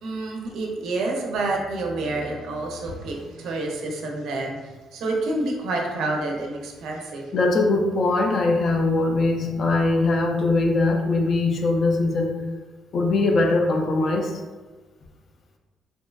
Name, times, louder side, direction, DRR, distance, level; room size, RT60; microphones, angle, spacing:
voice 1, 0.0-7.3 9.4-9.7, right 2 dB, 75° right, 0 dB, 0.4 m, -28 dB
voice 2, 7.3-12.3 12.9-14.4, left 2 dB, 50° left, 2 dB, 0.3 m, -21 dB
2.6 x 2.2 x 2.2 m, 1.3 s
cardioid pair, 120°, 0 cm